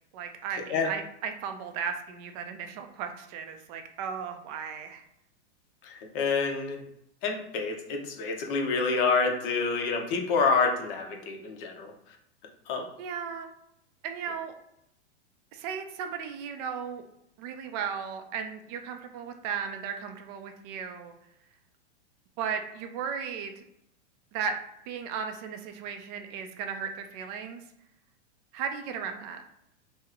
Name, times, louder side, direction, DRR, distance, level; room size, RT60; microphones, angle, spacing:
voice 1, 0.1-5.0 13.0-13.5 14.0-14.5 15.5-17.0 17.4-21.1 22.4-23.7 24.3-24.6 24.9-27.6 28.5-29.4, right 7 dB, 35° right, 6 dB, 0.4 m, -35 dB
voice 2, 5.8-6.8 7.2-11.9 12.7-12.9, left 4 dB, 50° left, 3 dB, 0.8 m, -27 dB
3.0 x 2.1 x 3.5 m, 0.79 s
hypercardioid pair, 135°, 35 cm